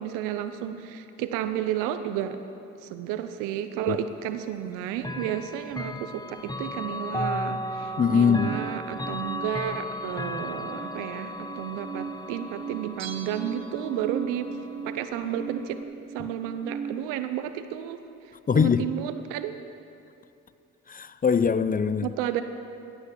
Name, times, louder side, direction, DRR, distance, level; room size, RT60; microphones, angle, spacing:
voice 1, 0.0-2.4 2.8-14.6 14.8-15.8 16.1-18.0 18.5-19.7 22.0-22.4, right 10 dB, 85° right, 0.7 m, -32 dB
Chime / Clock, 5.0-15.8, left 1 dB, 15° left, 0.8 m, -36 dB
voice 2, 8.0-8.5 18.5-18.8 20.9-22.1, left 6 dB, 30° left, 0.5 m, -22 dB
sound 1, 8.1-10.2 10.5-16.9, right 6 dB, 25° right, 1.2 m, -39 dB
Bell, 13.0-14.4 14.7-14.8, right 7 dB, 60° right, 1.0 m, -44 dB
16.0 x 6.4 x 7.4 m
hypercardioid pair, 50°, 31 cm